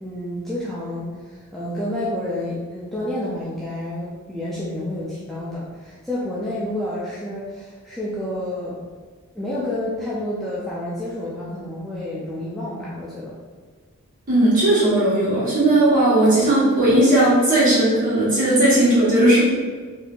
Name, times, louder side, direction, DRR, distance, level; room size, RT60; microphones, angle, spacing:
voice 1, 0.0-8.8 9.3-13.4, left 1 dB, ahead, -9 dB, 0.3 m, -29 dB
voice 2, 14.3-19.4, right 1 dB, 40° right, -9 dB, 1.3 m, -17 dB
3.6 x 2.7 x 2.4 m, 1.5 s
head